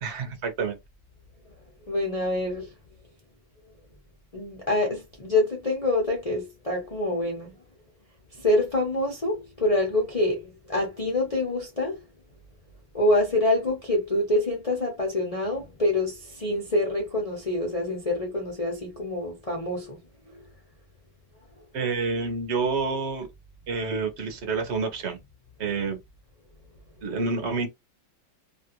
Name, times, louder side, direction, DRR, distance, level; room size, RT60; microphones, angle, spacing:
voice 1, 0.0-0.8 21.7-23.3 23.7-25.2 25.6-26.0 27.0-27.7, right 4 dB, 50° right, 0.8 m, -28 dB
voice 2, 1.9-2.7 4.3-7.6 8.3-12.0 12.9-20.0, left 1 dB, 65° left, 0.3 m, -26 dB
3.0 x 2.5 x 2.8 m
omnidirectional pair, 2.1 m